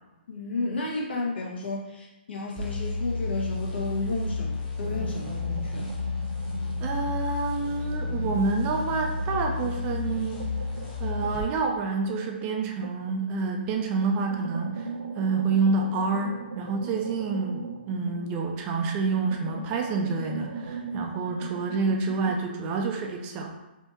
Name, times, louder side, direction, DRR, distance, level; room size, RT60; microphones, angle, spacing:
voice 1, 0.3-5.9 18.0-18.1, left 2 dB, 75° left, -4 dB, 1.5 m, -32 dB
sound 1, 2.6-11.5, left 3 dB, 20° left, 1.0 m, -31 dB
sound 2, 4.8-7.3 7.6-13.2 13.7-18.7 19.0-22.4, right 4 dB, 85° right, 0.7 m, -39 dB
voice 2, 6.8-10.5 11.0-14.9 15.2-23.5, right 4 dB, 20° right, 2 dB, 0.4 m, -28 dB
3.5 x 2.8 x 4.0 m, 1.1 s
hypercardioid pair, 155°, 6 cm